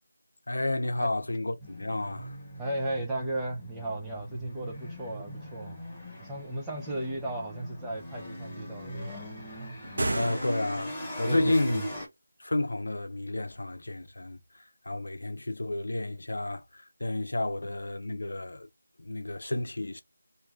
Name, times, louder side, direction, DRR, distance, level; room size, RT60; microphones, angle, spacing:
voice 1, 0.5-2.4 10.1-11.8 12.4-18.7 19.0-20.0, left 2 dB, 70° left, 0.7 m, -31 dB
sound 1, 1.6-12.1, equal, 10° left, 1.3 m, -39 dB
voice 2, 2.6-5.8 6.2-9.3 11.3-11.9, right 1 dB, 5° right, 0.7 m, -35 dB
sound 2, 9.8-11.1, right 2 dB, 60° right, 0.9 m, -33 dB
3.2 x 2.7 x 3.4 m
figure-of-eight pair, 165°, 0 cm